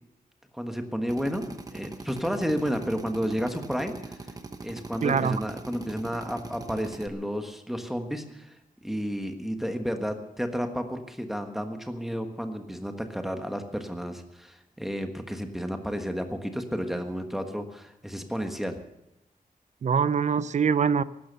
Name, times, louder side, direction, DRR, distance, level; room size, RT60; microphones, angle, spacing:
voice 1, 0.5-4.2 4.6-8.6 8.8-18.8, equal, ahead, 5 dB, 1.4 m, -32 dB
Drill, 1.1-7.1, right 3 dB, 25° right, 1.1 m, -42 dB
voice 2, 5.0-5.4 19.8-21.0, right 6 dB, 55° right, 16 dB, 0.5 m, -23 dB
16.5 x 12.0 x 6.8 m, 0.86 s
wide cardioid pair, 180°, 15 cm